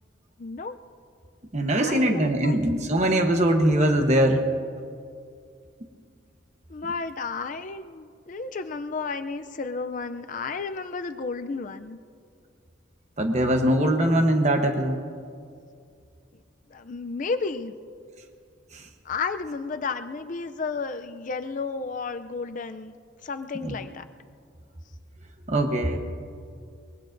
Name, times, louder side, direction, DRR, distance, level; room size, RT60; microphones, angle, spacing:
voice 1, 0.4-0.8 1.8-2.6 6.7-12.0 16.7-17.7 19.0-22.9 23.2-24.0, left 4 dB, 40° left, 9 dB, 0.4 m, -32 dB
voice 2, 1.5-4.4 13.2-15.0 18.7-18.8 23.6-23.8 25.5-26.0, right 1 dB, 35° right, 4 dB, 1.0 m, -22 dB
23.5 x 22.0 x 2.6 m, 2.3 s
head